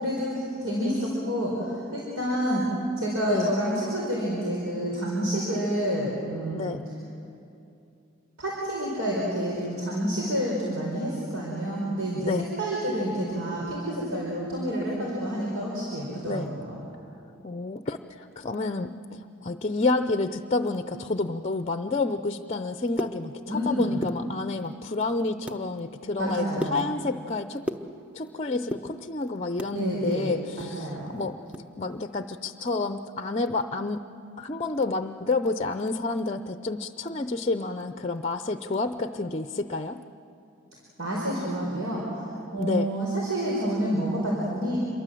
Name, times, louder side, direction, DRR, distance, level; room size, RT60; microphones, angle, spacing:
voice 1, 0.0-2.6 3.0-6.8 8.4-12.3 12.6-16.7 23.5-24.0 26.2-26.8 29.7-31.1 41.0-42.3 42.5-44.8, equal, 85° right, -4 dB, 4.9 m, -28 dB
voice 2, 6.5-6.8 12.3-12.5 16.2-16.6 17.4-27.7 28.1-31.4 31.8-34.0 34.4-40.0 42.6-42.9, left 3 dB, 30° left, 10 dB, 0.6 m, -29 dB
sound 1, 22.7-23.7 23.9-24.7 25.1-25.7 26.0-28.3 28.6-29.8 30.2-31.7 32.0-32.1 32.4-32.7 33.0-33.3, equal, 5° right, 0.9 m, -36 dB
27.5 x 23.0 x 7.7 m, 2.7 s
head